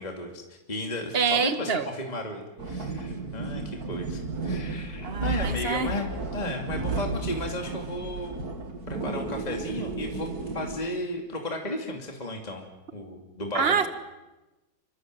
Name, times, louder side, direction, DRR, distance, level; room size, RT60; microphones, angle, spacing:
voice 1, 0.0-8.4 8.9-10.3 10.5-12.6 12.9-13.8, left 1 dB, 20° left, 2 dB, 2.8 m, -34 dB
voice 2, 1.1-1.9 5.0-5.9 13.5-13.9, right 6 dB, 30° right, 9 dB, 1.8 m, -26 dB
sound 1, 2.6-10.8, right 3 dB, 50° right, 2.7 m, -33 dB
28.0 x 25.5 x 7.9 m, 1.0 s
omnidirectional pair, 2.1 m